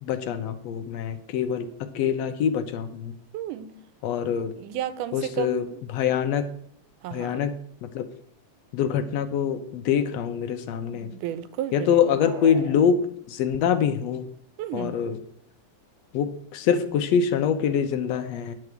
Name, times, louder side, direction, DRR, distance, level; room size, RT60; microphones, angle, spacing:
voice 1, 0.0-3.1 4.0-4.5 5.1-6.5 7.1-7.5 7.8-8.1 8.7-11.1 11.7-13.0 13.3-14.3 14.7-15.2 16.1-18.5, left 8 dB, 75° left, 9 dB, 1.6 m, -25 dB
voice 2, 3.3-3.7 4.6-5.8 7.0-7.4 10.9-11.9 14.6-14.9, right 11 dB, 90° right, 14 dB, 2.2 m, -32 dB
sound 1, 11.9-13.5, right 3 dB, 50° right, 0.8 m, -42 dB
9.9 x 4.7 x 7.8 m, 0.68 s
omnidirectional pair, 3.5 m